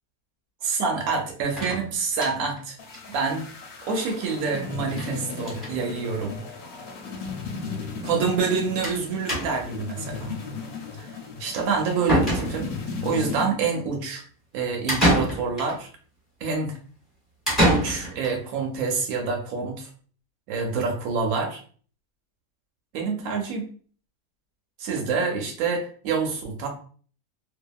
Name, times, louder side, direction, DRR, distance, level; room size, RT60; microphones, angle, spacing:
voice 1, 0.6-2.7 3.1-3.5 3.9-6.4 8.0-10.3 10.9-11.1 11.4-12.7 13.0-14.2 14.5-15.9 16.4-16.8 17.6-19.9 20.5-21.6 22.9-23.7 24.8-26.7, right 5 dB, 65° right, 2 dB, 1.1 m, -27 dB
sound 1, 1.6-2.6 2.9-3.0 3.3-3.4 3.6-3.7 4.9-5.1 5.4-5.8 6.6-6.7 7.0-7.1 8.8-9.0 9.3-9.8 11.6-11.7 12.1-12.9 14.9-15.8 17.5-18.3, right 1 dB, ahead, 1.2 m, -25 dB
sound 2, 2.8-13.5, left 4 dB, 70° left, 1.0 m, -36 dB
2.7 x 2.4 x 2.2 m, 0.43 s
omnidirectional pair, 1.7 m